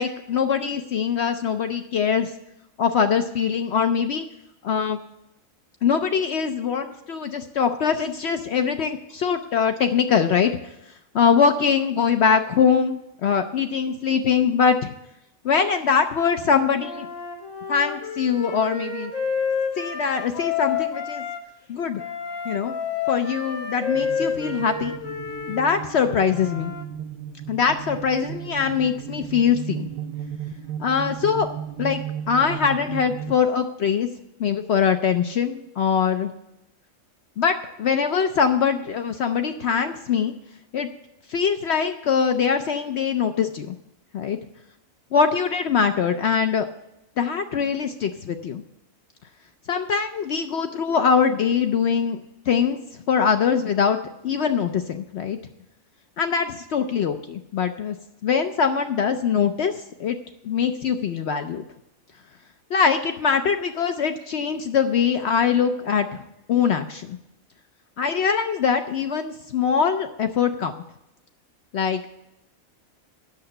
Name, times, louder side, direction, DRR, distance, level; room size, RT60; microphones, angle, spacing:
voice 1, 0.0-2.3 2.8-4.3 4.6-5.0 5.8-10.7 11.1-14.9 15.4-17.1 17.7-19.1 19.8-21.2 21.7-22.0 22.4-22.7 23.1-24.9 25.5-26.7 27.5-29.9 30.8-31.5 31.8-32.0 32.3-34.1 34.4-36.3 37.4-40.3 40.7-40.9 41.3-43.7 44.1-44.4 45.1-46.7 47.2-48.6 49.7-52.2 52.5-52.8 53.1-54.0 54.2-55.4 56.2-58.0 58.2-60.2 60.4-61.6 62.7-66.1 66.5-67.2 68.0-70.7 71.7-72.1, left 6 dB, 60° left, 7 dB, 0.8 m, -22 dB
Wind instrument woodwind instrument, 16.8-21.4 22.0-26.8, left 6 dB, 85° left, 1.9 m, -29 dB
sound 1, 23.9-33.4, right 9 dB, 70° right, 0.5 m, -35 dB
8.6 x 6.7 x 7.9 m, 0.87 s
omnidirectional pair, 1.4 m